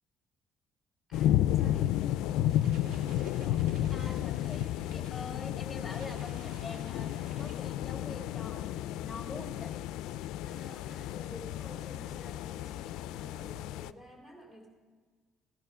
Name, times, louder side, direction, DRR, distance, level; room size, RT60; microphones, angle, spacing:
sound 1, 1.1-13.9, left 12 dB, 90° left, 0.3 m, -32 dB
voice 1, 1.1-2.0 4.0-5.3 10.5-14.7, left 1 dB, 10° right, -1 dB, 2.6 m, -51 dB
sound 2, 2.3-8.2, right 3 dB, 75° right, 1.7 m, -55 dB
voice 2, 3.9-9.9, left 3 dB, 10° left, 4 dB, 1.5 m, -45 dB
14.5 x 11.5 x 5.5 m, 1.5 s
cardioid pair, 165°, 0 cm